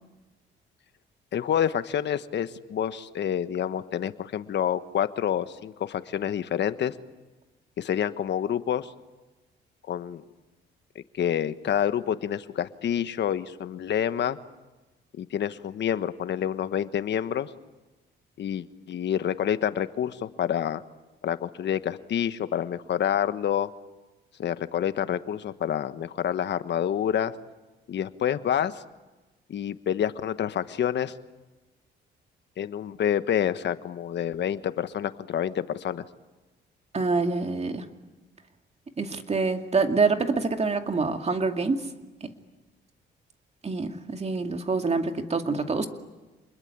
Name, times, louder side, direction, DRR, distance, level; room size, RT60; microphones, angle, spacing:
voice 1, 1.3-6.9 7.8-8.9 9.9-10.2 10.9-14.4 15.2-17.5 18.4-20.8 21.2-23.7 24.4-27.3 27.9-28.8 29.5-31.1 32.6-36.0, left 9 dB, 65° left, 12 dB, 1.3 m, -28 dB
voice 2, 36.9-37.8 39.0-41.8 42.2-42.3 43.6-45.9, right 4 dB, 30° right, 6 dB, 2.4 m, -26 dB
28.0 x 21.0 x 9.8 m, 1.2 s
cardioid pair, 90°, 20 cm